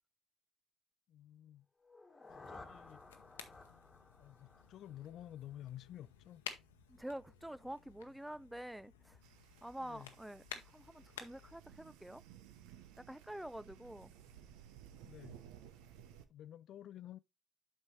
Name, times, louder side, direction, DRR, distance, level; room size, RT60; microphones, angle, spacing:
voice 1, 1.1-1.7 2.5-3.0 4.2-6.4 9.8-10.1 15.0-15.4 16.3-17.2, left 12 dB, 60° left, 0.4 m, -51 dB
sound 1, 1.8-5.7, left 3 dB, 20° left, 1.5 m, -56 dB
sound 2, 2.3-11.6, left 8 dB, 85° left, 0.8 m, -54 dB
voice 2, 6.9-9.2 9.6-10.4 10.7-12.2 13.0-14.1, right 1 dB, 5° right, 0.4 m, -47 dB
sound 3, 9.2-16.2, right 10 dB, 75° right, 0.8 m, -58 dB
8.0 x 5.4 x 3.2 m
hypercardioid pair, 55°, 0 cm